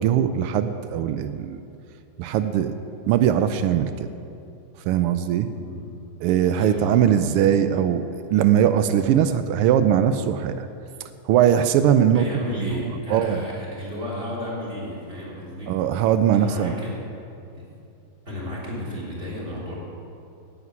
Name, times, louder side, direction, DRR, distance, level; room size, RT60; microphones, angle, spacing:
voice 1, 0.0-1.6 2.2-2.7 3.1-4.1 4.8-5.5 6.2-8.0 8.3-10.7 11.2-12.3 12.6-13.4 15.7-16.7, right 9 dB, 90° right, 10 dB, 1.5 m, -20 dB
voice 2, 5.5-5.9 6.3-7.1 12.1-15.7 16.3-16.9 17.5-17.7 18.2-19.7, left 1 dB, 25° right, -6 dB, 3.4 m, -33 dB
10.0 x 8.1 x 9.6 m, 2.6 s
omnidirectional pair, 2.4 m